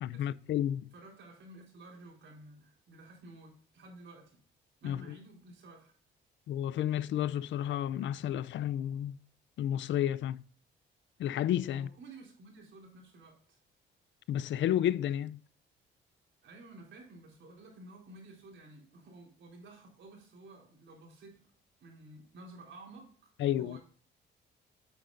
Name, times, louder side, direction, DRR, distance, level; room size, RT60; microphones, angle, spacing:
voice 1, 0.0-0.9 4.8-5.0 6.5-9.2 9.6-10.4 11.2-11.9 14.3-15.4 23.4-23.8, left 11 dB, 70° left, 0.5 m, -31 dB
voice 2, 0.9-4.4 4.8-5.9 11.7-13.6 16.4-21.5 21.8-23.8, right 2 dB, 70° right, 4.4 m, -53 dB
9.0 x 9.0 x 2.6 m
cardioid pair, 90°, 20 cm